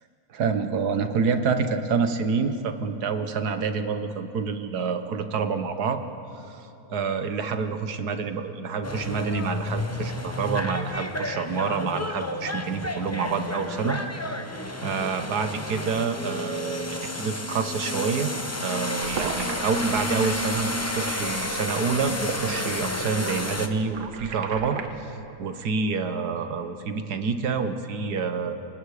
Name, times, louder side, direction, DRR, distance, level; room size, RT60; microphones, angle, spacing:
voice 1, 0.3-6.0 6.5-14.1 14.8-16.8 17.1-18.3 18.6-25.1 25.4-28.5, right 5 dB, 75° right, 8 dB, 1.7 m, -27 dB
sound 1, 8.8-23.7, left 1 dB, 10° left, 0.8 m, -31 dB
sound 2, 19.0-24.9, right 5 dB, 90° right, 1.8 m, -36 dB
28.5 x 24.5 x 5.0 m, 2.8 s
omnidirectional pair, 1.7 m